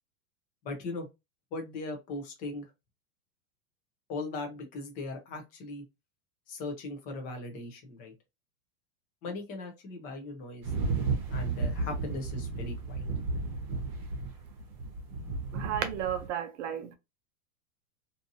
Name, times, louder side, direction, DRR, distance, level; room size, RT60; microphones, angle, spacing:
voice 1, 0.6-1.1 1.5-2.7 4.1-5.8 6.5-8.1 9.2-10.7 11.3-13.1, left 2 dB, 20° left, 0.4 m, -39 dB
sound 1, 10.6-16.3, right 3 dB, 35° right, 0.9 m, -33 dB
voice 2, 15.5-16.9, right 9 dB, 55° right, 0.5 m, -33 dB
2.6 x 2.6 x 2.6 m
supercardioid pair, 150°, 46 cm